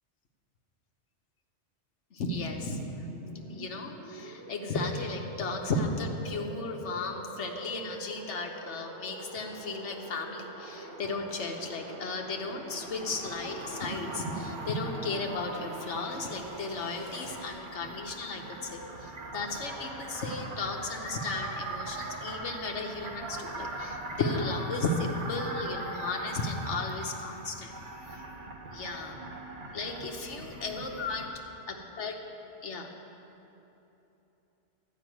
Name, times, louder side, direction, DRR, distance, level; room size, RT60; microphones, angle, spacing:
voice 1, 2.1-2.8 3.5-27.7 28.7-29.2 29.7-31.3 31.7-32.1 32.6-32.9, left 3 dB, 85° left, 2 dB, 1.3 m, -35 dB
sound 1, 2.6-17.3, right 2 dB, 85° right, 2.3 m, -46 dB
sound 2, 12.7-31.3, right 2 dB, 50° right, 1.1 m, -41 dB
11.5 x 5.7 x 9.1 m, 3.0 s
omnidirectional pair, 1.2 m